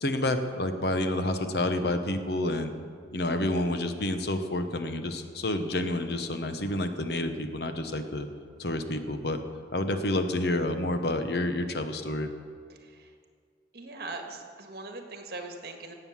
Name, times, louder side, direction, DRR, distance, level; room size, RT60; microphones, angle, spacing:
voice 1, 0.0-2.7 3.1-8.3 8.6-9.4 9.7-12.3, left 1 dB, 60° left, 8 dB, 1.0 m, -29 dB
voice 2, 12.8-13.1 13.7-15.9, right 2 dB, 55° right, 4 dB, 1.7 m, -41 dB
18.0 x 7.8 x 7.3 m, 2.1 s
head